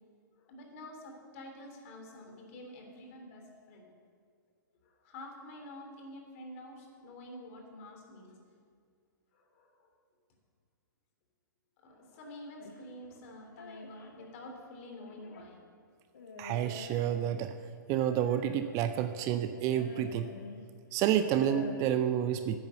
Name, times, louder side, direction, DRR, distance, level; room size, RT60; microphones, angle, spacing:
voice 1, 0.4-3.9 4.8-8.4 9.3-9.9 11.8-15.7, left 1 dB, 40° left, 2 dB, 3.2 m, -48 dB
sound 1, 12.6-14.4 15.0-15.5 16.1-17.5 18.0-18.8 19.5-20.7 21.1-21.8, left 4 dB, 70° left, 1.5 m, -47 dB
voice 2, 16.4-17.5 17.9-20.3 20.9-22.6, right 10 dB, 30° right, 10 dB, 0.5 m, -29 dB
10.5 x 9.3 x 7.7 m, 2.2 s
figure-of-eight pair, 115°, 11 cm